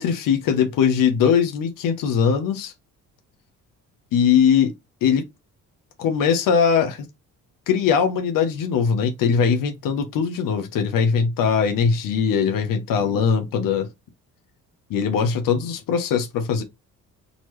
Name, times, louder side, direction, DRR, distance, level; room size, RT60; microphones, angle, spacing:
voice 1, 0.0-2.7 4.1-4.7 5.0-5.3 6.0-7.1 7.7-13.9 14.9-16.6, left 7 dB, 75° left, 0.9 m, -20 dB
4.0 x 3.1 x 3.1 m
cardioid pair, 115°, 33 cm